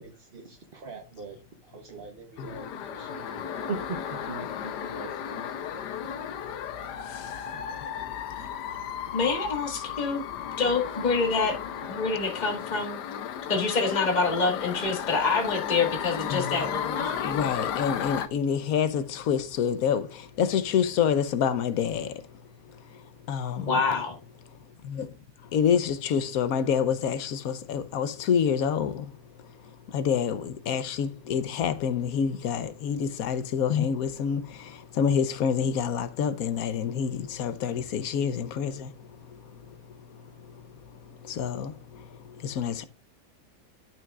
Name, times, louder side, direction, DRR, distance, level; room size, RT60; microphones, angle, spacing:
voice 1, 0.0-1.4 1.7-5.5 7.5-7.9, right 4 dB, 45° right, 0.9 m, -41 dB
sound 1, 2.4-18.3, left 9 dB, 85° left, 1.3 m, -34 dB
voice 2, 7.0-7.8 16.3-16.7 17.1-22.3 22.7-23.8 24.8-25.1 25.4-29.1 29.4-42.8, left 7 dB, 65° left, 1.2 m, -28 dB
voice 3, 9.1-10.2 10.6-11.6 11.9-13.0 13.5-17.4 23.6-24.2, left 4 dB, 25° left, 1.7 m, -26 dB
12.0 x 6.0 x 2.4 m
omnidirectional pair, 1.8 m